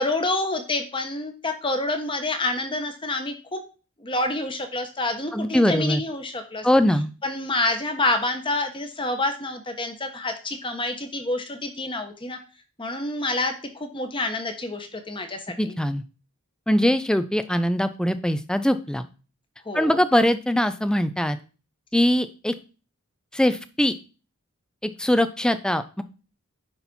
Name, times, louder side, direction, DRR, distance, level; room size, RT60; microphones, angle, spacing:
voice 1, 0.0-3.6 4.0-6.7 7.2-12.4 12.8-15.7 19.6-20.0, left 2 dB, 25° left, 6 dB, 1.1 m, -28 dB
voice 2, 5.3-6.0 6.6-7.1 15.6-16.0 16.7-19.0 19.7-21.4 21.9-22.5 23.3-23.9 24.8-26.0, left 1 dB, 5° left, 12 dB, 0.4 m, -22 dB
9.8 x 4.2 x 4.3 m, 0.35 s
head